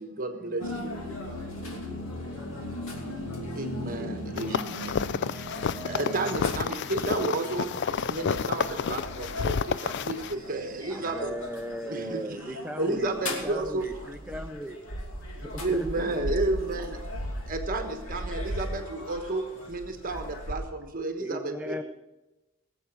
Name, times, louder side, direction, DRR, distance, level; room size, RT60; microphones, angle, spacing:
voice 1, 0.0-1.0 3.5-11.4 11.9-13.9 15.3-17.0 17.5-21.8, right 2 dB, 40° right, 5 dB, 1.3 m, -32 dB
sound 1, 0.6-20.5, left 1 dB, 70° left, 2.7 m, -38 dB
voice 2, 1.2-2.7 10.6-11.1 13.2-13.9 15.8-16.8, right 1 dB, 20° left, -2 dB, 3.2 m, -51 dB
voice 3, 1.9-2.4 4.0-4.8 5.2-5.9 10.9-13.1 13.4-14.7 15.4-16.1 21.2-21.8, equal, 5° right, 5 dB, 0.5 m, -38 dB
sound 2, 4.4-10.3, left 6 dB, 50° left, 0.4 m, -30 dB
19.0 x 8.2 x 6.0 m, 1.1 s
head